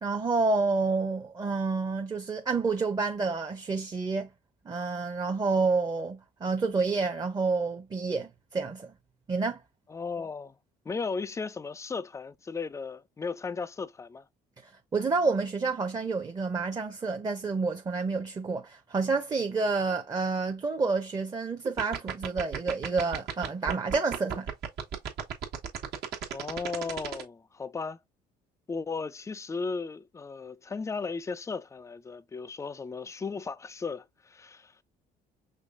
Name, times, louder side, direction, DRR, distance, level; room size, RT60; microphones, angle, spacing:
voice 1, 0.0-4.3 4.7-8.9 9.3-9.6 14.6-24.5, right 4 dB, 25° right, 0.6 m, -29 dB
voice 2, 9.9-10.5 10.9-14.3 26.3-28.0 28.7-34.7, left 4 dB, 20° left, 0.4 m, -36 dB
sound 1, 21.6-27.2, right 7 dB, 75° right, 1.3 m, -33 dB
5.3 x 3.3 x 2.4 m
cardioid pair, 110°, 17 cm